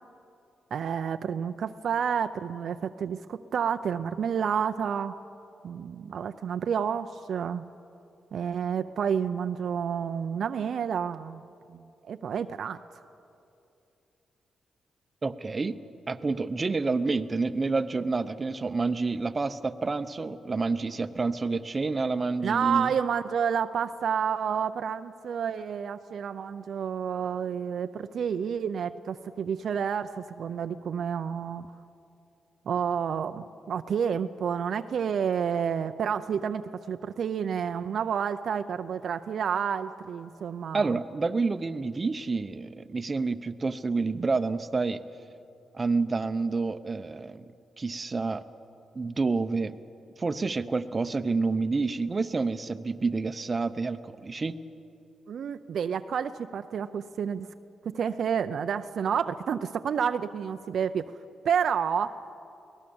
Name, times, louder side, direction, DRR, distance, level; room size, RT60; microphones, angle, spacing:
voice 1, 0.7-5.2 5.6-7.6 8.3-11.4 11.7-12.8 22.4-31.7 32.7-41.0 55.3-57.5 57.8-61.1 61.4-62.3, right 7 dB, 70° right, 9 dB, 0.5 m, -30 dB
voice 2, 15.2-15.8 16.1-22.9 40.7-45.0 45.7-47.4 47.8-48.4 48.9-49.8 50.2-54.6, right 4 dB, 30° right, 10 dB, 0.8 m, -28 dB
23.0 x 18.0 x 7.1 m, 2.7 s
cardioid pair, 90°, 0 cm